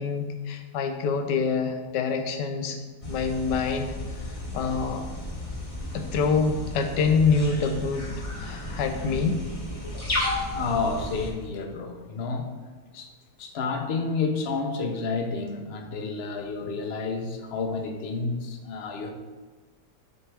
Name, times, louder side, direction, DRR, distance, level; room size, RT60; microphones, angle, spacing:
voice 1, 0.0-2.8 3.1-3.9 4.5-5.1 5.9-8.1 8.4-9.4, left 5 dB, 90° left, 6 dB, 1.3 m, -25 dB
sound 1, 3.0-11.3, left 1 dB, 25° left, 1.0 m, -34 dB
voice 2, 10.5-12.5 12.9-13.1 13.4-19.1, left 4 dB, 50° left, 4 dB, 0.8 m, -30 dB
9.8 x 4.5 x 3.4 m, 1.3 s
omnidirectional pair, 1.8 m